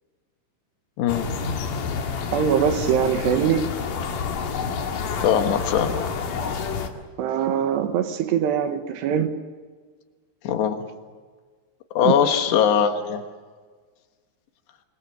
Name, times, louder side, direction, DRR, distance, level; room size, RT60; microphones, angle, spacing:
sound 1, 1.1-6.9, left 5 dB, 60° left, 3.1 m, -28 dB
voice 1, 2.3-3.6 7.2-9.3 12.0-12.2, right 8 dB, 85° right, 7 dB, 3.6 m, -22 dB
voice 2, 5.2-5.9 10.5-10.8 12.0-13.2, left 8 dB, 80° left, 6 dB, 3.7 m, -21 dB
27.5 x 22.0 x 6.6 m, 1.5 s
omnidirectional pair, 4.8 m